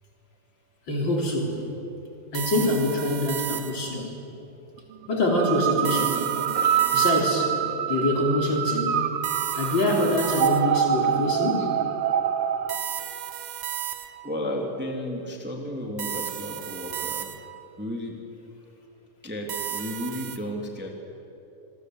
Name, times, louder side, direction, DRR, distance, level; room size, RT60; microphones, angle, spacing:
voice 1, 0.9-1.6 2.3-4.1 5.1-6.2 6.9-7.6 7.9-9.1 9.6-11.8, left 1 dB, 35° left, 0 dB, 4.1 m, -25 dB
sound 1, 2.3-4.0 5.8-7.5 9.2-10.9 12.7-14.4 16.0-17.7 19.5-20.4, right 11 dB, 65° right, 2.0 m, -34 dB
sound 2, 5.2-12.8, right 9 dB, 85° right, 1.3 m, -25 dB
voice 2, 14.2-17.3 17.8-18.2 19.2-20.9, left 1 dB, 5° right, 1 dB, 2.4 m, -33 dB
27.0 x 22.0 x 7.9 m, 3.0 s
omnidirectional pair, 3.9 m